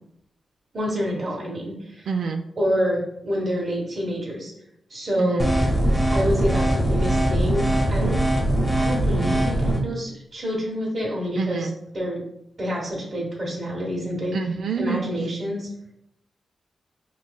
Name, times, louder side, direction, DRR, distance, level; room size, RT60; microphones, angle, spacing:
voice 1, 0.7-2.1 2.6-4.5 4.9-5.5 6.1-8.2 8.7-11.7 11.9-12.2 12.6-14.4 14.7-15.7, equal, 40° right, -4 dB, 1.1 m, -27 dB
voice 2, 2.1-2.4 5.2-5.4 11.4-11.7 14.3-15.1, right 5 dB, 80° right, 4 dB, 0.3 m, -27 dB
sound 1, 5.4-9.8, right 1 dB, 5° left, 0.8 m, -21 dB
5.6 x 3.1 x 2.3 m, 0.79 s
wide cardioid pair, 105°, 0 cm